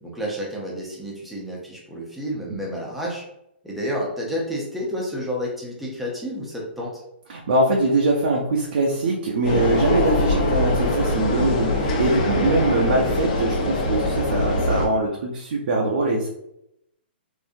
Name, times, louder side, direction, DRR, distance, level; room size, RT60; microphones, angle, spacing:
voice 1, 0.0-3.2 3.6-7.0, equal, ahead, -4 dB, 0.6 m, -30 dB
voice 2, 7.3-16.3, right 2 dB, 55° right, -2 dB, 0.6 m, -22 dB
mbkl entrance wide, 9.4-14.9, left 1 dB, 40° left, 0.6 m, -23 dB
3.6 x 2.6 x 2.6 m, 0.81 s
hypercardioid pair, 165°, 6 cm